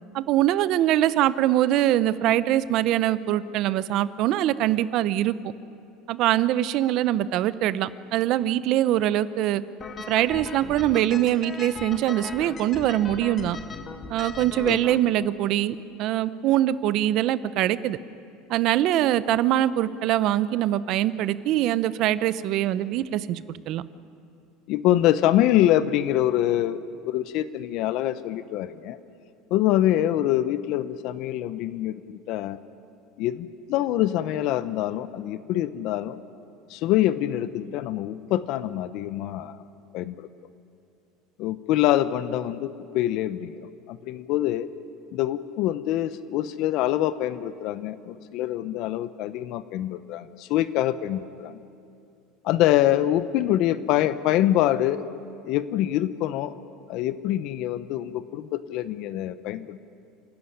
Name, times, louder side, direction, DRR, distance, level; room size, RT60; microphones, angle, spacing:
voice 1, 0.1-5.4 6.1-9.6 10.1-13.6 14.1-18.0 18.5-23.8, right 13 dB, 50° right, 16 dB, 0.7 m, -23 dB
sound 1, 9.8-15.0, left 4 dB, 25° left, 1.6 m, -38 dB
voice 2, 24.7-29.0 29.5-32.6 33.2-36.2 36.7-39.6 39.9-40.3 41.4-44.7 45.1-51.6 52.4-55.0 55.4-56.5 56.9-59.8, left 13 dB, 55° left, 13 dB, 0.7 m, -25 dB
28.5 x 13.5 x 9.9 m, 2.6 s
cardioid pair, 150°, 0 cm